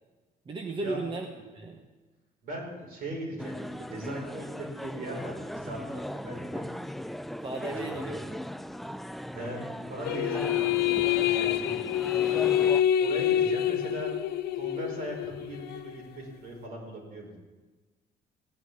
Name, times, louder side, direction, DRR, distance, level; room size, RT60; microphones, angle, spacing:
voice 1, 0.5-1.8 7.4-8.3, right 3 dB, 30° right, 3 dB, 1.1 m, -36 dB
voice 2, 2.4-6.7 7.7-8.0 9.3-12.4 12.7-14.1 14.5-17.4, right 1 dB, 60° right, -1 dB, 5.1 m, -39 dB
sound 1, 3.4-12.8, equal, ahead, 0.4 m, -38 dB
sound 2, 10.0-15.9, left 11 dB, 70° left, 0.6 m, -27 dB
17.0 x 6.1 x 9.7 m, 1.3 s
cardioid pair, 110°, 17 cm